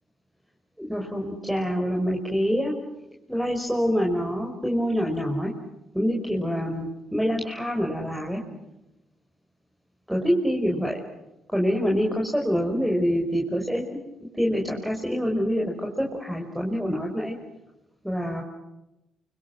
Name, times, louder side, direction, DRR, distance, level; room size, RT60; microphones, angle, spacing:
voice 1, 0.8-2.7 3.3-5.5 5.9-8.4 10.1-11.0 11.5-13.8 14.3-17.4 18.0-18.4, equal, ahead, 0 dB, 5.5 m, -26 dB
29.5 x 25.0 x 7.9 m, 0.92 s
cardioid pair, 90°, 0 cm